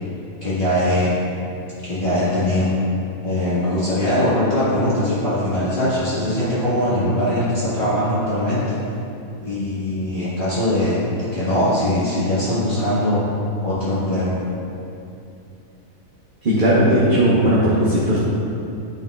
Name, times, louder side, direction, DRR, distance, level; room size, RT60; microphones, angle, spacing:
voice 1, 0.4-1.1 1.8-2.7 3.2-8.8 9.4-13.2 13.6-14.3, left 1 dB, 35° left, -12 dB, 1.9 m, -21 dB
voice 2, 16.4-18.2, right 1 dB, 40° right, -8 dB, 1.1 m, -17 dB
9.8 x 7.0 x 2.4 m, 2.7 s
omnidirectional pair, 1.4 m